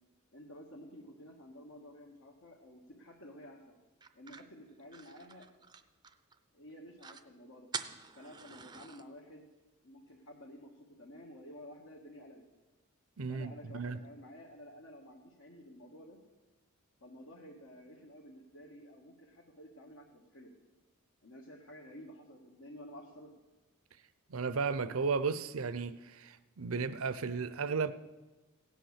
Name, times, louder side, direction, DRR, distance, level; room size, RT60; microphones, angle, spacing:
voice 1, 0.3-3.7 4.1-5.5 6.5-7.7 8.2-9.5 9.8-12.4 13.3-16.2 17.0-20.5 21.2-23.4, equal, 70° left, 1.6 m, -52 dB
sound 1, 4.0-6.4 6.7-6.8 7.0-7.3 7.7-9.0, right 5 dB, 20° right, 0.5 m, -46 dB
voice 2, 13.2-14.0 24.3-27.9, right 5 dB, 70° right, 0.6 m, -34 dB
16.5 x 9.2 x 6.5 m
head